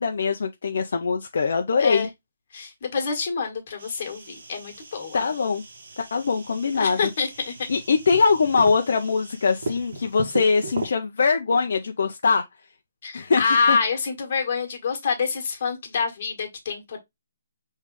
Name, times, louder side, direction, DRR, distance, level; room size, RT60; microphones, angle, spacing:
voice 1, 0.0-2.1 5.1-5.6 6.0-7.0 7.7-12.4 13.1-13.4 13.7-13.8, left 5 dB, 60° left, 0.6 m, -22 dB
voice 2, 1.8-2.1 2.5-5.2 6.8-7.7 13.0-17.0, left 5 dB, 40° left, 1.5 m, -26 dB
sound 1, 3.8-10.9, right 3 dB, 60° right, 1.4 m, -38 dB
5.2 x 3.2 x 3.1 m
hypercardioid pair, 175°, 0 cm